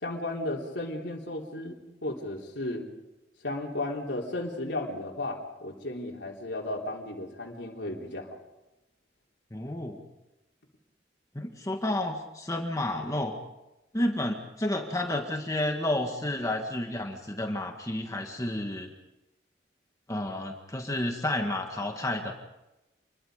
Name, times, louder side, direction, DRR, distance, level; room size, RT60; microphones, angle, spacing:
voice 1, 0.0-1.8 2.0-2.8 3.4-8.3, left 2 dB, 80° left, -2 dB, 3.7 m, -34 dB
voice 2, 9.5-10.0 11.4-13.3 13.9-18.9 20.1-22.3, left 1 dB, 20° left, 3 dB, 1.7 m, -31 dB
28.5 x 22.0 x 5.1 m, 0.98 s
head